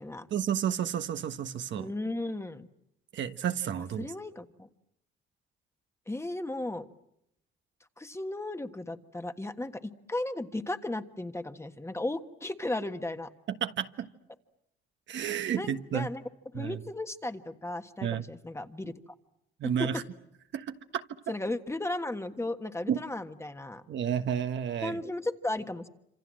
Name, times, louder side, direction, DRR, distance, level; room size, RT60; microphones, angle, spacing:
voice 1, 0.3-1.9 3.1-4.1 13.6-14.1 15.1-16.1 16.5-16.8 18.0-18.2 19.6-20.0 20.5-21.3 22.9-23.0 23.9-25.0, right 9 dB, 70° right, 1.4 m, -31 dB
voice 2, 1.7-2.7 3.8-4.7 6.1-6.9 8.0-13.3 15.5-16.2 16.5-19.1 19.6-19.9 21.3-23.8 24.8-25.9, left 2 dB, 15° left, 1.5 m, -35 dB
27.5 x 26.5 x 7.7 m
cardioid pair, 90°, 20 cm